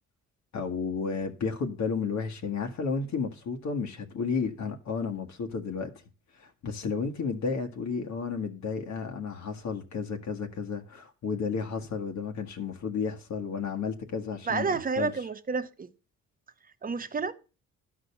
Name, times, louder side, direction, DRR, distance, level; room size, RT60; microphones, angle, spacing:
voice 1, 0.5-5.9 6.3-15.1, left 5 dB, 70° left, 1.7 m, -32 dB
voice 2, 14.5-15.9 16.8-17.3, right 4 dB, 30° right, 1.0 m, -30 dB
12.0 x 5.0 x 7.0 m
cardioid pair, 90°, 30 cm